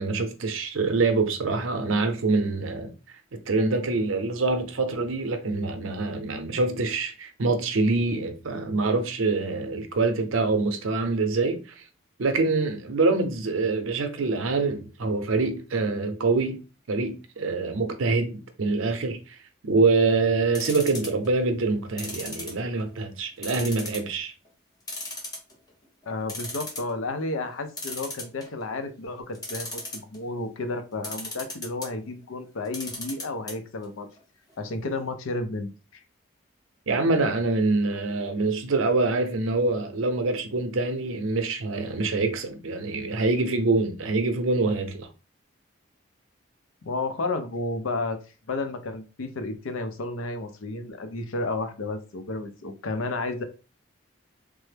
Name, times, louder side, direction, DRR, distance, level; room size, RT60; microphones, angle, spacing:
voice 1, 0.0-2.9 3.3-11.6 12.2-16.6 16.9-19.4 19.6-24.3 36.9-45.1, right 3 dB, 85° right, 0.6 m, -25 dB
sound 1, 20.5-21.3 22.0-23.0 23.4-24.1 24.5-24.6 24.9-25.7 26.0-26.1 26.3-26.9 27.8-28.6 29.3-30.2 31.0-31.9 32.7-33.5 33.8-33.9 34.2-34.3, left 2 dB, 20° left, 0.7 m, -35 dB
voice 2, 26.1-34.1 34.6-36.0 46.8-48.2 48.5-53.4, left 2 dB, 85° left, 0.5 m, -32 dB
3.3 x 2.0 x 3.3 m
head